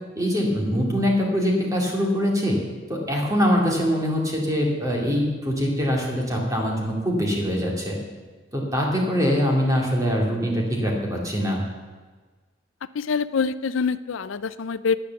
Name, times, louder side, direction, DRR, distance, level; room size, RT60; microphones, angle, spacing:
voice 1, 0.2-2.6 2.9-8.0 8.5-11.6, equal, 15° right, -1 dB, 2.4 m, -23 dB
voice 2, 12.9-15.0, left 5 dB, 85° left, 15 dB, 0.5 m, -25 dB
10.0 x 10.0 x 7.0 m, 1.4 s
head